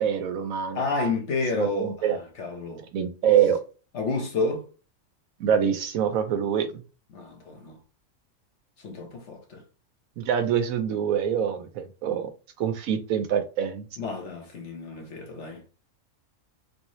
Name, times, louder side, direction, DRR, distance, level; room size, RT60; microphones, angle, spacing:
voice 1, 0.0-0.8 1.5-2.2 2.9-3.6 5.4-6.8 10.2-12.3 12.6-13.8, right 8 dB, 90° right, 1.1 m, -25 dB
voice 2, 0.7-2.1 2.4-2.8 3.9-4.7 7.1-7.8 8.8-9.6 14.0-15.6, left 3 dB, 60° left, 1.3 m, -30 dB
3.7 x 2.7 x 3.0 m
omnidirectional pair, 1.4 m